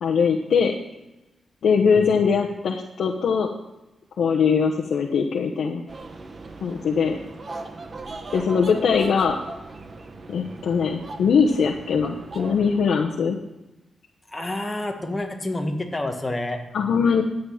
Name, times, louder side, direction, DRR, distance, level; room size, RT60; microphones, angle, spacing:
voice 1, 0.0-0.7 1.6-3.5 4.2-5.8 6.6-7.2 8.3-9.4 10.3-13.4 16.7-17.2, left 6 dB, 75° left, 1 dB, 0.9 m, -21 dB
sound 1, 5.9-12.8, right 3 dB, 35° right, 1.1 m, -38 dB
voice 2, 14.3-16.6, left 1 dB, 15° left, 3 dB, 1.6 m, -29 dB
11.5 x 8.9 x 5.7 m, 0.96 s
wide cardioid pair, 130°, 0 cm